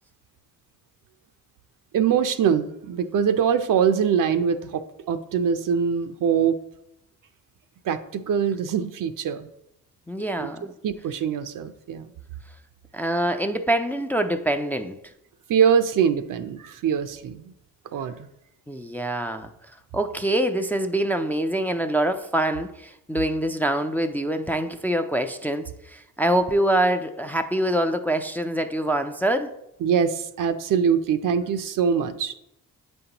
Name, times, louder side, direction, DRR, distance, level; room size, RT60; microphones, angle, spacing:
voice 1, 1.9-6.6 7.8-9.5 10.4-10.5 10.8-12.1 15.5-17.5 17.9-18.3 29.8-32.4, right 7 dB, 65° right, 0.6 m, -23 dB
voice 2, 10.1-10.7 12.9-15.0 18.7-19.5 19.9-29.5, right 1 dB, 5° left, 0.4 m, -25 dB
8.0 x 5.3 x 2.9 m
cardioid pair, 85°, 35 cm